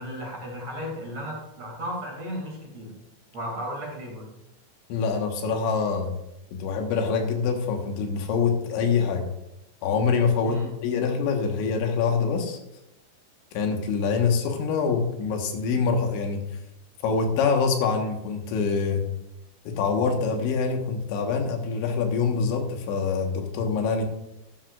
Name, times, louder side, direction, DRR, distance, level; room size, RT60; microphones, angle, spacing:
voice 1, 0.0-2.9 3.3-4.3 10.4-10.7, equal, 40° right, -2 dB, 3.2 m, -35 dB
voice 2, 4.9-6.1 6.5-9.3 9.8-12.6 13.6-16.4 17.0-19.0 19.7-24.0, left 5 dB, 90° left, 4 dB, 3.7 m, -25 dB
13.0 x 12.5 x 2.5 m, 0.86 s
omnidirectional pair, 5.1 m